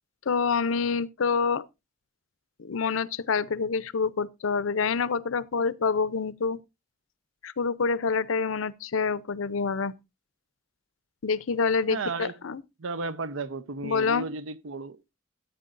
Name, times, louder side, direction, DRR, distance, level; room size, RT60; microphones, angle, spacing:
voice 1, 0.3-1.6 2.6-6.6 7.4-9.9 11.2-12.6 13.8-14.3, left 5 dB, 85° left, 0.6 m, -27 dB
voice 2, 11.9-12.3 12.8-15.1, right 3 dB, 75° right, 0.7 m, -34 dB
14.0 x 9.0 x 2.5 m
head